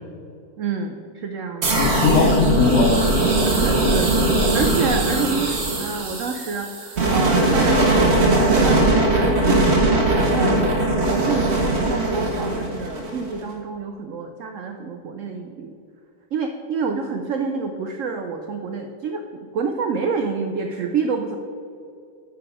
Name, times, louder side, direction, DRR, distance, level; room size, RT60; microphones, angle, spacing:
voice 1, 0.6-1.9 3.4-4.1 4.5-15.7 16.3-21.4, right 5 dB, 80° right, 5 dB, 0.7 m, -28 dB
sound 1, 1.6-13.4, right 2 dB, 45° right, 1.3 m, -20 dB
voice 2, 1.8-3.1 3.6-3.7, left 7 dB, 75° left, 3 dB, 0.7 m, -20 dB
10.0 x 3.8 x 4.8 m, 2.5 s
omnidirectional pair, 1.9 m